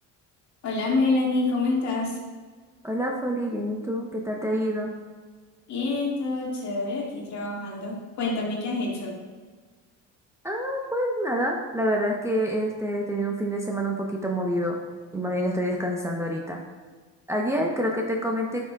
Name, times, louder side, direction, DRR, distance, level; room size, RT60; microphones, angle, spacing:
voice 1, 0.6-2.2 5.7-9.2, left 3 dB, 50° left, -2 dB, 2.2 m, -27 dB
voice 2, 2.8-4.9 10.4-14.8 15.1-16.6 17.3-18.6, equal, 10° right, -1 dB, 0.9 m, -27 dB
10.0 x 5.9 x 2.4 m, 1.4 s
supercardioid pair, 90°, 35 cm